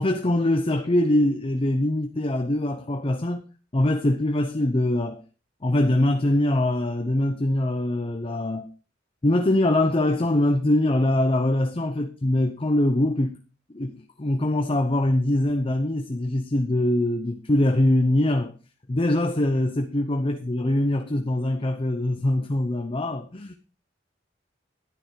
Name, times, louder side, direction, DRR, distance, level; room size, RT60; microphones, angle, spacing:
voice 1, 0.0-3.4 3.7-5.2 5.6-8.7 9.2-13.4 13.7-18.5 18.9-23.6, left 1 dB, 30° left, 0.7 m, -23 dB
11.0 x 9.8 x 4.6 m
head